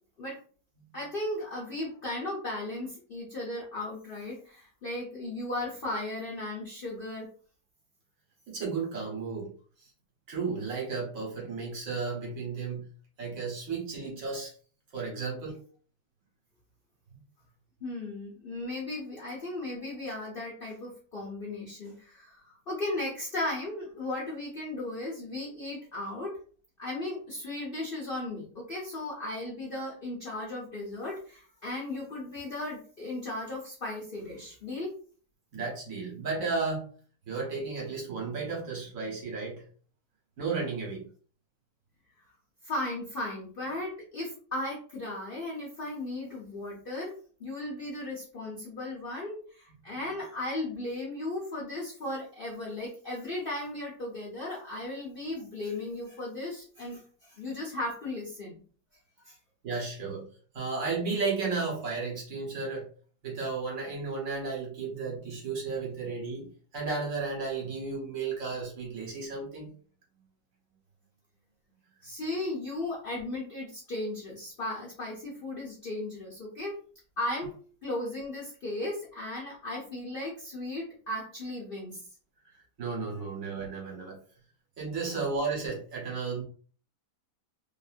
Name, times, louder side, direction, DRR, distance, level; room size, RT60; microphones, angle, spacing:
voice 1, 0.9-7.3 17.8-26.4 26.8-34.9 42.6-58.5 59.2-59.3 72.0-76.8 77.2-77.5 77.8-82.0, left 2 dB, 50° left, -4 dB, 0.7 m, -36 dB
voice 2, 8.5-9.5 9.8-9.9 10.3-12.9 13.2-14.5 14.9-15.6 35.5-36.9 37.3-39.6 40.4-41.1 49.8-49.9 59.6-60.3 60.5-62.9 63.2-69.7 82.8-84.2 84.8-86.4, right 4 dB, 60° right, -2 dB, 1.3 m, -33 dB
2.8 x 2.6 x 2.4 m, 0.43 s
omnidirectional pair, 1.7 m